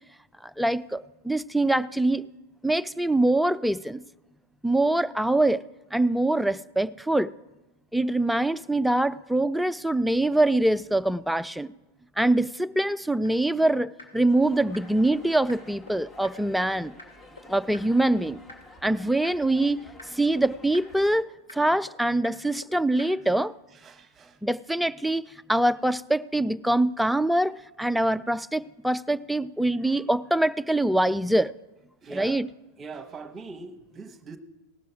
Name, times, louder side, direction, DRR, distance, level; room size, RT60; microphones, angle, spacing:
voice 1, 0.4-2.2 2.6-4.0 4.6-5.6 5.9-7.3 7.9-11.7 12.2-16.9 17.5-18.4 18.8-19.8 20.1-23.5 24.4-25.2 25.5-27.5 27.8-31.5 32.1-32.5, right 1 dB, ahead, 13 dB, 0.3 m, -24 dB
sound 1, 13.2-13.3 13.6-13.7 14.0-14.1 14.4-14.5 14.7-14.8 15.1-15.2 15.5-15.6 15.9-16.0 16.2-16.3 16.6-16.7 17.0-17.1 17.4-17.5 17.7-17.8 18.1-18.2 18.5-18.6 18.9-19.0 19.2-19.3 19.6-19.7 20.0-20.1 20.4-20.5 20.7-20.8 21.1-21.2 21.5-21.6 21.9-22.0 22.2-22.3 22.6-22.7 23.0-23.1, left 2 dB, 80° left, 2.5 m, -44 dB
sound 2, 14.3-21.2, left 2 dB, 20° left, 1.1 m, -50 dB
voice 2, 23.8-24.4 32.0-32.4 32.8-34.4, right 4 dB, 20° right, 10 dB, 1.0 m, -42 dB
18.0 x 6.8 x 4.9 m, 1.0 s
figure-of-eight pair, 90°, 0 cm